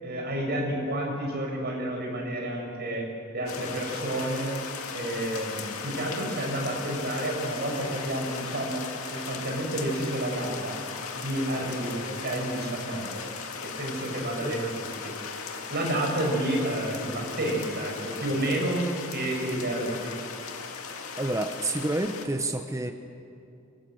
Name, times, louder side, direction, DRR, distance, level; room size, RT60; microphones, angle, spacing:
voice 1, 0.0-3.1 3.3-4.6 4.9-8.8 9.1-10.8 11.1-13.2 13.6-18.8 19.1-20.1, right 1 dB, 50° right, 0 dB, 6.3 m, -30 dB
sound 1, 3.5-22.3, left 5 dB, 75° left, 2.2 m, -37 dB
voice 2, 21.2-22.9, right 2 dB, 15° right, 6 dB, 0.9 m, -29 dB
24.5 x 22.0 x 8.0 m, 2.5 s
head